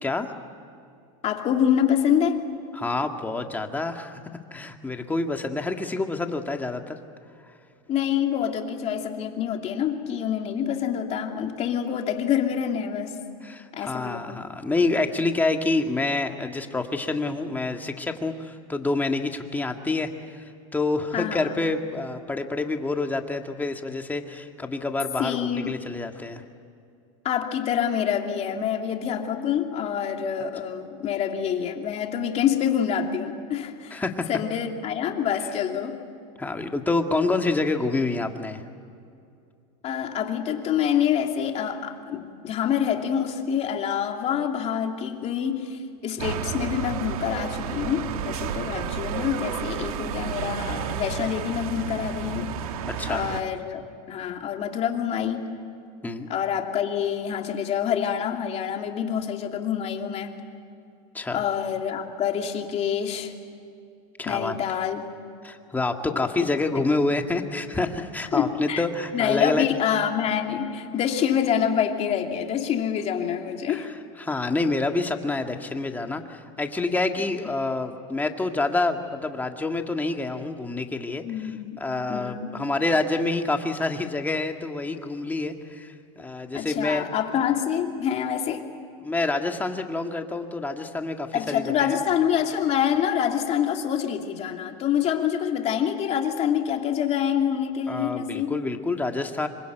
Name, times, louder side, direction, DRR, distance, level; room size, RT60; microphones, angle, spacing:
voice 1, 0.0-0.3 2.7-4.2 4.5-7.0 7.4-7.5 13.4-26.4 33.9-34.3 36.4-38.6 52.8-53.3 56.0-56.3 61.1-61.4 64.2-64.5 65.4-69.7 73.7-87.0 89.0-92.0 97.9-99.5, left 3 dB, 10° left, 5 dB, 1.8 m, -27 dB
voice 2, 1.2-2.5 7.9-13.2 13.7-14.5 21.1-21.5 25.2-25.8 27.2-34.0 34.3-36.0 39.8-52.5 53.1-53.8 54.1-55.5 56.3-60.3 61.3-63.3 64.2-65.1 66.1-66.3 68.3-68.8 69.1-73.9 81.2-81.8 82.1-82.6 86.5-88.6 91.3-98.6, left 9 dB, 35° left, 3 dB, 2.7 m, -26 dB
sound 1, 46.2-53.4, right 8 dB, 85° right, 1.6 m, -31 dB
26.0 x 23.5 x 9.2 m, 2.4 s
supercardioid pair, 135°, 18 cm